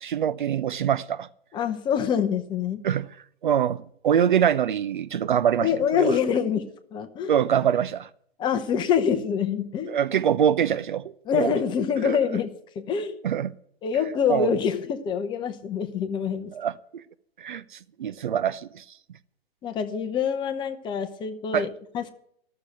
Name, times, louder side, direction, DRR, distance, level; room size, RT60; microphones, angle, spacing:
voice 1, 0.0-1.3 2.8-3.1 3.4-5.7 6.0-6.1 7.3-8.1 9.9-11.6 12.0-12.2 13.2-13.5 14.3-14.5 16.5-16.7 17.4-17.6 18.0-18.8 21.5-21.7, right 9 dB, 50° right, 0.7 m, -24 dB
voice 2, 1.5-2.8 5.6-7.3 8.4-10.0 11.2-13.2 13.8-16.5 19.6-22.1, left 7 dB, 15° left, 1.0 m, -26 dB
13.5 x 6.8 x 9.8 m
figure-of-eight pair, 125°, 31 cm